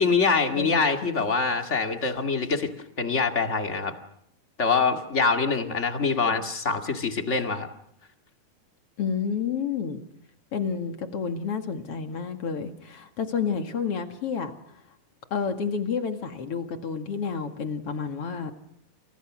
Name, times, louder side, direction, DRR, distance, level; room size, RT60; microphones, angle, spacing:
voice 1, 0.0-2.7 3.0-3.9 4.6-7.7, left 4 dB, 25° left, 4 dB, 1.6 m, -24 dB
voice 2, 9.0-10.0 10.5-14.5 15.3-18.5, left 6 dB, 45° left, 6 dB, 2.6 m, -30 dB
29.5 x 28.5 x 6.3 m, 0.74 s
omnidirectional pair, 4.3 m